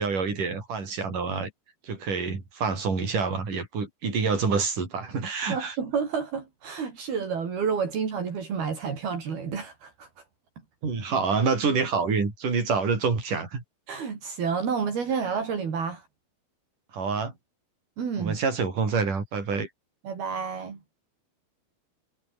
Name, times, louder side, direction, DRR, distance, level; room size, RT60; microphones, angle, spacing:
voice 1, 0.0-1.5 1.9-5.8 10.8-13.6 16.9-17.3 18.2-19.7, right 5 dB, 50° right, 7.6 m, -27 dB
voice 2, 5.5-10.1 13.9-16.1 18.0-18.4 20.0-20.8, right 6 dB, 70° right, 6.3 m, -30 dB
omnidirectional pair, 4.6 m